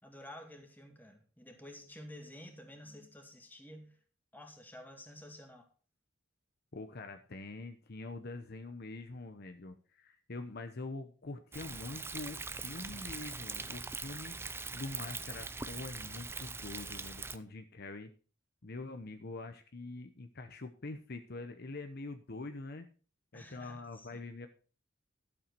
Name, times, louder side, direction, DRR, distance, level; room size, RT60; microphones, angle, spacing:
voice 1, 0.0-4.0 4.3-5.7 23.3-24.2, left 1 dB, 10° left, 3 dB, 2.0 m, -51 dB
voice 2, 6.7-14.4 14.7-18.1 18.6-22.9 23.3-24.5, left 2 dB, 55° left, 7 dB, 0.9 m, -44 dB
Thunder, 11.5-17.4, right 4 dB, 10° right, 0.5 m, -42 dB
12.0 x 7.9 x 4.6 m, 0.38 s
head